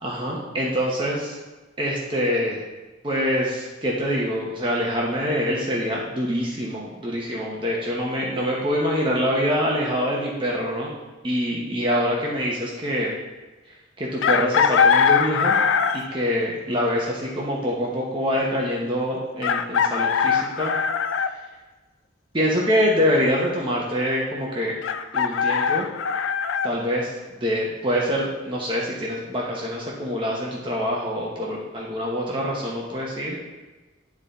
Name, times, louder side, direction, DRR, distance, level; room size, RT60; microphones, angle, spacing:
voice 1, 0.0-1.3 1.8-2.6 3.0-10.9 11.2-13.1 14.0-15.6 15.9-20.8 21.3-21.4 22.3-24.8 25.1-25.9 26.6-33.4, equal, 25° right, -4 dB, 0.9 m, -25 dB
Chicken rooster, 14.2-16.2 17.8-17.9 19.4-21.3 24.8-26.7, left 6 dB, 75° left, 0.4 m, -21 dB
9.7 x 3.9 x 4.1 m, 1.2 s
head